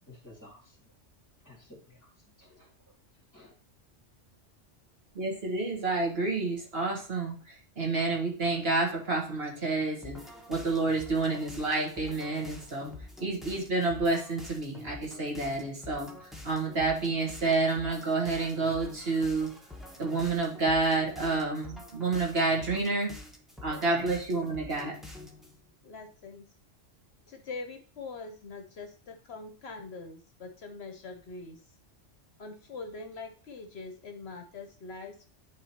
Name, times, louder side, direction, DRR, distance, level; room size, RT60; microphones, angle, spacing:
voice 1, 0.0-0.9 1.4-2.1 2.4-2.9 3.3-3.5, left 1 dB, 15° left, -1 dB, 2.4 m, -54 dB
voice 2, 5.1-10.2 10.5-12.9 13.2-19.6 20.0-23.1 23.6-24.9, right 3 dB, 55° right, 0 dB, 1.7 m, -29 dB
sound 1, 10.0-25.6, left 1 dB, ahead, 0.9 m, -47 dB
voice 3, 25.8-26.4 27.3-31.6 32.4-35.3, left 3 dB, 65° left, 6 dB, 1.0 m, -43 dB
11.0 x 3.8 x 2.9 m, 0.40 s
omnidirectional pair, 1.2 m